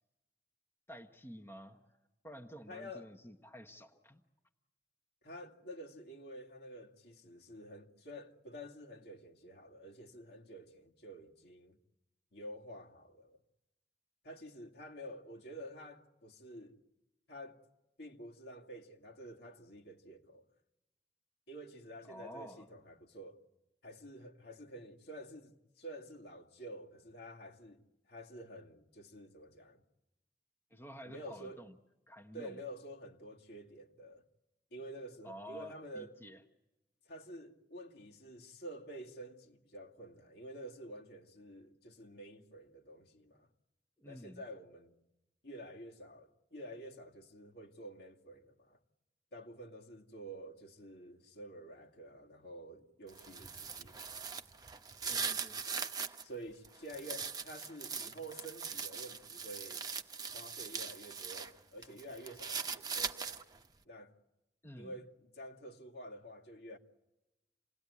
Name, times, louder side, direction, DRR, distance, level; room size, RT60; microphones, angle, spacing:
voice 1, 0.9-2.0 2.2-4.2 22.0-22.7 30.7-31.8 32.1-32.6 35.2-36.4 44.0-44.4 55.1-55.6 64.6-64.9, equal, 15° left, 1.2 m, -50 dB
voice 2, 2.7-3.1 5.2-11.8 12.3-13.4 14.2-16.8 17.3-17.6 18.0-20.5 21.5-23.4 23.8-29.8 31.0-31.6 32.3-34.2 34.7-36.1 37.1-43.5 44.0-45.0 45.4-48.8 49.3-54.1 56.2-59.9 60.3-63.4 63.9-64.1 64.8-66.8, right 1 dB, 65° left, 2.4 m, -49 dB
sound 1, 53.1-56.2 56.6-61.5 61.8-63.6, right 5 dB, 20° right, 1.0 m, -41 dB
28.5 x 18.5 x 9.7 m
head